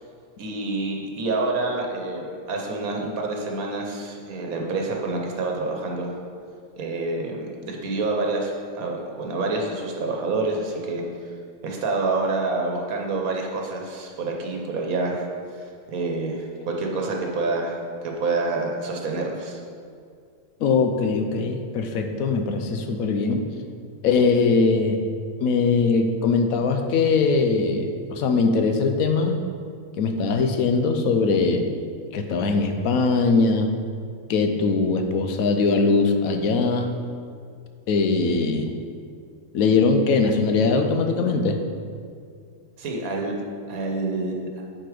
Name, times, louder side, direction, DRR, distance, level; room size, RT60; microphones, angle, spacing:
voice 1, 0.4-6.1 6.8-11.0 11.6-15.3 15.5-17.8 18.0-19.6 42.8-43.3 43.7-44.5, right 3 dB, 80° right, 1 dB, 1.3 m, -27 dB
voice 2, 20.6-23.4 24.0-25.0 25.4-29.4 30.0-31.6 32.1-33.7 34.3-36.9 37.9-38.7 39.5-41.6, left 4 dB, 80° left, 5 dB, 1.1 m, -21 dB
8.0 x 4.3 x 4.9 m, 2.2 s
omnidirectional pair, 1.5 m